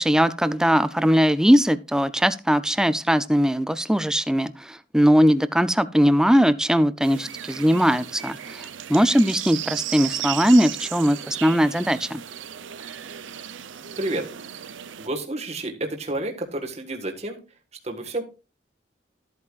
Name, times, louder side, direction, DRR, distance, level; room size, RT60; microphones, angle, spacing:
voice 1, 0.0-12.2, equal, 5° right, 14 dB, 0.5 m, -20 dB
sound 1, 7.0-15.1, right 11 dB, 85° right, 0.6 m, -35 dB
voice 2, 15.0-17.6 17.8-18.2, right 2 dB, 35° right, 3 dB, 1.6 m, -30 dB
13.5 x 8.4 x 2.4 m, 0.30 s
head